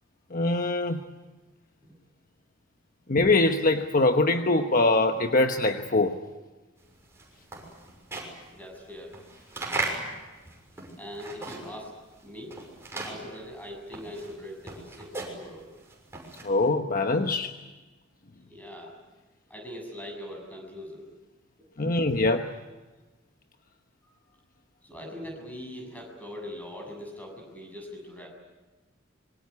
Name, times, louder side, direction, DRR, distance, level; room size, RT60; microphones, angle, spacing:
voice 1, 0.3-1.0 3.1-6.2 16.4-17.5 21.8-22.5, left 2 dB, 45° left, 6 dB, 1.1 m, -23 dB
sound 1, 6.9-11.9 12.2-16.7, right 2 dB, 15° right, 6.3 m, -37 dB
voice 2, 8.1-9.2 11.0-11.9 12.2-12.6 13.0-15.7 18.5-19.0 19.5-21.1 21.8-22.0 24.8-28.3, equal, 10° left, 2 dB, 7.1 m, -41 dB
26.0 x 23.5 x 8.6 m, 1.2 s
head